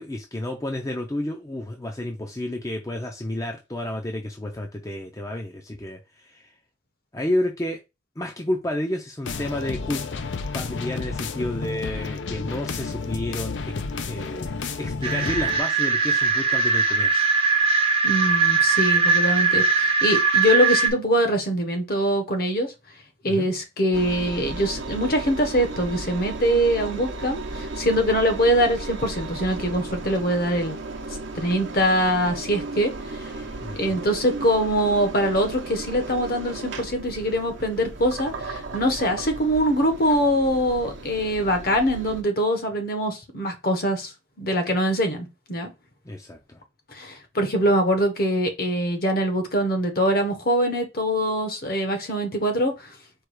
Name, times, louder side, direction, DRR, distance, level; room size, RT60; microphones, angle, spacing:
voice 1, 0.0-6.5 7.1-7.8 8.2-10.0 10.5-13.7 14.1-17.2 23.2-23.5 33.6-34.0 46.0-46.6, left 1 dB, 15° left, 0.5 m, -31 dB
sound 1, 9.2-15.6, left 4 dB, 75° left, 0.5 m, -31 dB
sound 2, 15.0-20.9, right 4 dB, 30° right, 0.6 m, -20 dB
voice 2, 18.0-22.7 23.2-30.8 31.3-32.9 33.2-33.3 33.7-44.1 44.4-45.7 46.9-52.9, equal, 50° left, 1.0 m, -23 dB
Engine, 23.9-42.2, right 2 dB, 75° right, 0.8 m, -35 dB
4.7 x 2.3 x 4.7 m
head